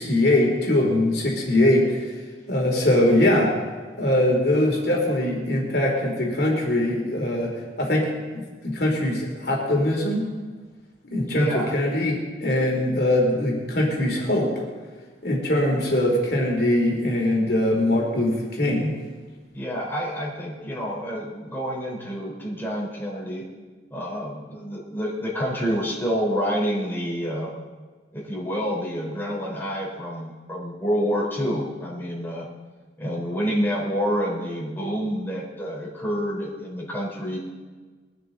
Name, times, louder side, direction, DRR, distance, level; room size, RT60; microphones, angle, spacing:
voice 1, 0.0-2.1 2.5-3.5 3.9-7.5 7.8-10.3 11.0-14.5 15.2-18.9, left 1 dB, 65° left, 0 dB, 2.9 m, -22 dB
voice 2, 11.3-11.7 19.5-23.4 23.9-27.5 28.1-32.5 33.0-37.4, equal, 10° left, -5 dB, 3.8 m, -28 dB
21.5 x 12.0 x 3.9 m, 1.4 s
head